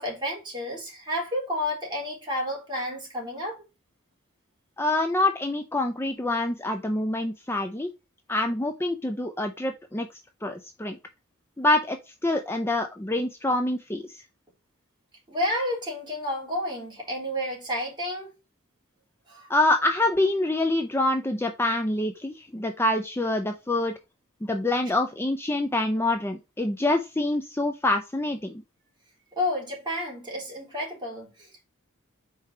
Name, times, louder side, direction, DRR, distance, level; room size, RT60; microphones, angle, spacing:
voice 1, 0.0-3.6 15.3-18.3 19.3-19.5 29.4-31.6, left 1 dB, 25° right, 3.6 m, -31 dB
voice 2, 4.8-7.9 8.3-10.1 10.4-11.0 11.6-14.2 19.5-23.9 24.4-28.6, left 2 dB, 10° left, 0.5 m, -26 dB
4.9 x 4.7 x 4.3 m
head